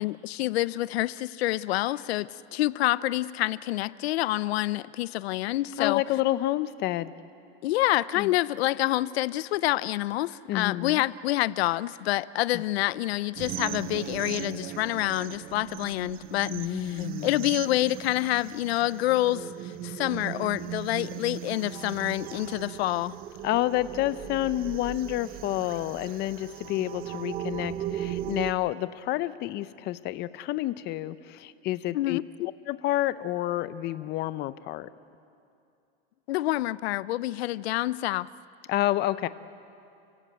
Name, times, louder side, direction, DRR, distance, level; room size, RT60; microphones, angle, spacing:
voice 1, 0.0-6.0 7.6-16.5 17.0-23.2 31.9-32.2 36.3-38.3, left 16 dB, 80° left, 19 dB, 0.7 m, -27 dB
voice 2, 5.8-7.1 8.2-8.3 10.5-11.0 12.5-12.6 16.5-17.5 23.4-32.2 32.7-34.9 38.7-39.3, left 15 dB, 35° left, 15 dB, 0.7 m, -29 dB
sound 1, 13.4-28.5, right 11 dB, 30° right, 0.8 m, -38 dB
30.0 x 16.5 x 8.3 m, 2.6 s
supercardioid pair, 150°, 31 cm